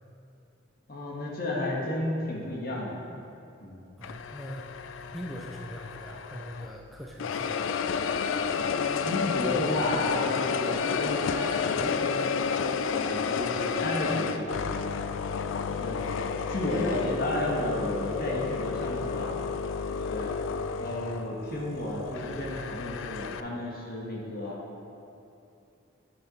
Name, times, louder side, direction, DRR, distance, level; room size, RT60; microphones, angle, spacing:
voice 1, 0.9-3.0 3.6-3.9 8.6-12.3 12.9-14.6 15.7-16.0 16.5-19.3 19.9-20.3 20.8-24.6, left 1 dB, 50° left, -3 dB, 1.5 m, -32 dB
sound 1, 4.0-6.8 7.2-23.4, left 6 dB, 85° left, 0.4 m, -31 dB
voice 2, 4.0-4.7 5.0-7.8 16.0-16.1, equal, ahead, -2 dB, 0.5 m, -42 dB
8.8 x 6.8 x 4.3 m, 2.8 s
head